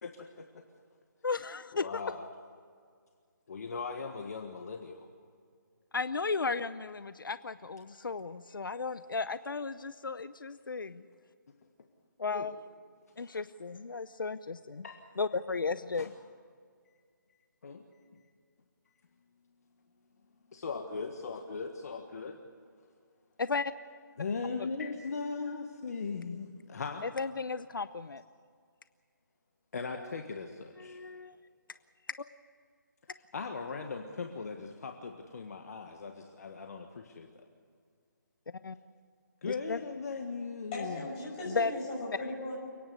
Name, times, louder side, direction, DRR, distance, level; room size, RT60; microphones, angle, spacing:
voice 1, 0.0-0.6 1.7-2.2 3.5-5.1 12.3-12.5 14.8-15.0 15.9-16.1 17.6-17.8 20.5-22.4 24.2-27.0 29.7-31.0 33.3-37.3 39.4-41.0, left 4 dB, 50° left, 4 dB, 1.6 m, -39 dB
voice 2, 1.2-2.0 5.9-11.0 12.2-12.5 13.2-14.8 15.2-16.1 23.4-23.7 27.0-28.2 30.0-30.1 30.8-31.4 38.6-38.8 39.5-39.8 41.5-41.7, left 4 dB, 85° left, 14 dB, 0.7 m, -34 dB
voice 3, 40.7-42.5, left 2 dB, 20° left, -3 dB, 6.4 m, -38 dB
29.5 x 10.5 x 9.5 m, 2.1 s
hypercardioid pair, 165°, 11 cm